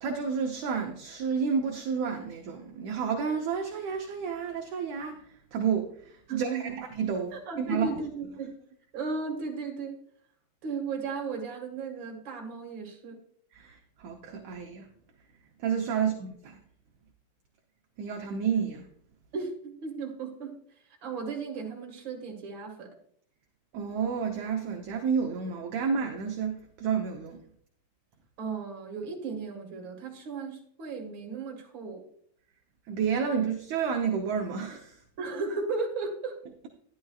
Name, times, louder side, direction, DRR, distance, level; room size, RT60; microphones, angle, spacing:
voice 1, 0.0-5.2 5.5-7.9 13.5-14.9 15.6-16.6 18.0-18.9 23.7-27.4 32.9-35.0, right 6 dB, 70° right, 2 dB, 1.8 m, -30 dB
voice 2, 6.3-6.8 7.3-8.5 8.9-10.0 10.6-13.2 16.0-16.1 19.3-20.5 21.0-22.9 28.4-32.0 35.2-36.4, right 4 dB, 40° right, 1 dB, 2.0 m, -35 dB
12.0 x 11.0 x 2.4 m, 0.64 s
omnidirectional pair, 4.2 m